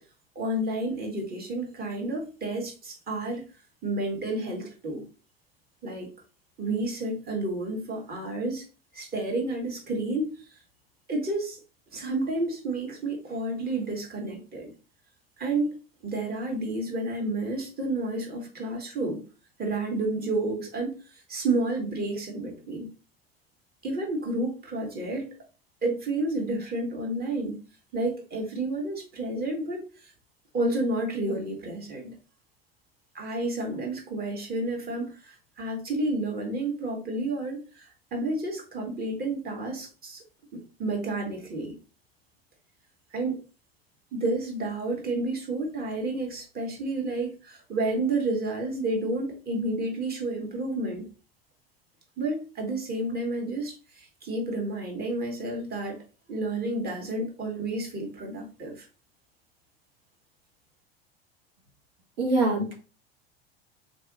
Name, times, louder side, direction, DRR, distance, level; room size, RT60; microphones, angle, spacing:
voice 1, 0.4-3.4 3.8-5.0 5.8-6.1 6.6-8.7 8.9-10.6 11.1-11.6 11.9-14.7 15.4-15.7 16.0-19.2 19.6-22.9 23.8-25.3 25.8-27.6 27.9-30.1 30.5-32.1 33.1-40.2 40.5-41.8 43.1-43.4 44.1-51.1 52.2-56.0 56.3-58.9, right 2 dB, 30° right, 1.7 m, -30 dB
voice 2, 62.2-62.7, right 2 dB, 75° right, 1.3 m, -24 dB
4.0 x 3.3 x 3.6 m
hypercardioid pair, 80°, 30 cm